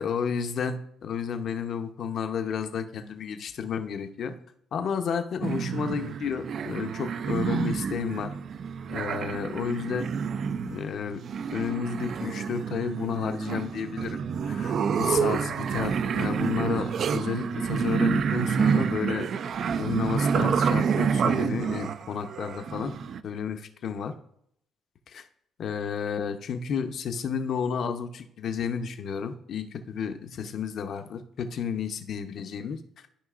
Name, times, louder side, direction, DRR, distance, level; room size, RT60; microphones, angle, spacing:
voice 1, 0.0-4.3 4.7-8.3 8.9-10.1 10.6-11.2 11.5-14.2 14.4-19.3 19.8-23.0 23.2-24.1 25.1-25.3 25.6-32.8, left 7 dB, 55° left, 8 dB, 0.7 m, -31 dB
sound 1, 5.4-23.2, right 6 dB, 55° right, 0.3 m, -28 dB
13.0 x 5.2 x 2.4 m, 0.73 s
cardioid pair, 115°, 0 cm